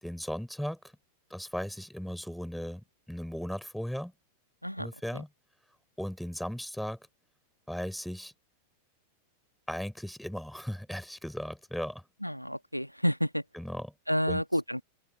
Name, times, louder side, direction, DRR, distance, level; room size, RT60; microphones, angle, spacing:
voice 1, 0.0-0.8 1.3-4.1 4.8-5.3 6.0-7.0 7.7-8.3 9.7-12.0 13.5-13.9 14.3-14.4, equal, ahead, 5.2 m, -37 dB
voice 2, 12.2-13.4 14.1-14.8, equal, 90° left, 1.7 m, -30 dB
open air
figure-of-eight pair, 90°, 0 cm